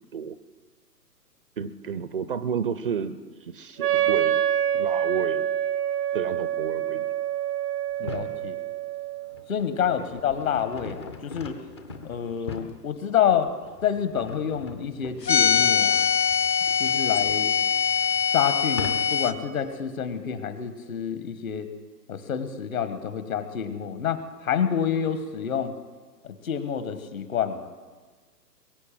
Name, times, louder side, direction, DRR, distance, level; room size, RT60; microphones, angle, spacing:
voice 1, 1.6-3.2 3.5-4.4 4.7-5.5 6.1-7.1 8.0-8.2, right 7 dB, 35° right, 13 dB, 0.5 m, -31 dB
Wind instrument woodwind instrument, 3.8-9.4, right 10 dB, 65° right, 0.8 m, -26 dB
sound 1, 7.9-8.4 9.0-19.4, left 4 dB, 20° left, 0.5 m, -42 dB
voice 2, 8.0-8.6 9.5-11.6 12.0-13.5 13.8-16.1 16.8-17.6 18.3-21.7 22.1-25.7 26.2-27.7, left 8 dB, 55° left, 10 dB, 1.5 m, -28 dB
sound 2, 15.2-19.3, left 7 dB, 80° left, 1.0 m, -23 dB
22.5 x 8.2 x 7.5 m, 1.4 s
figure-of-eight pair, 125°, 49 cm